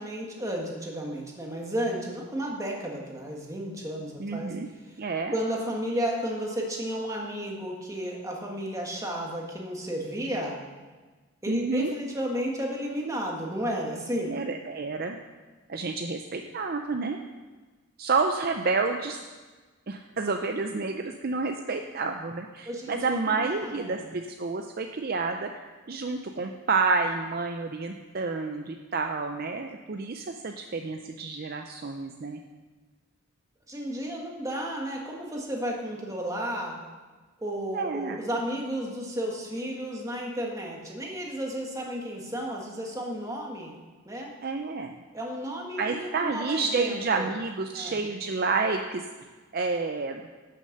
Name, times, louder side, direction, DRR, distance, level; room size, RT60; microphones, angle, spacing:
voice 1, 0.0-4.6 4.9-5.0 5.3-10.6 11.4-14.4 22.6-24.0 33.7-36.8 37.4-43.8 44.0-44.3 45.1-47.3 47.7-48.0, equal, 15° right, 0 dB, 1.5 m, -33 dB
voice 2, 4.2-4.7 5.0-5.3 11.5-11.9 14.3-15.2 15.7-17.2 18.0-19.2 19.9-32.4 37.7-38.2 44.4-44.9 45.8-49.0 49.5-50.2, right 4 dB, 45° right, 5 dB, 0.5 m, -29 dB
11.0 x 6.5 x 6.5 m, 1.3 s
head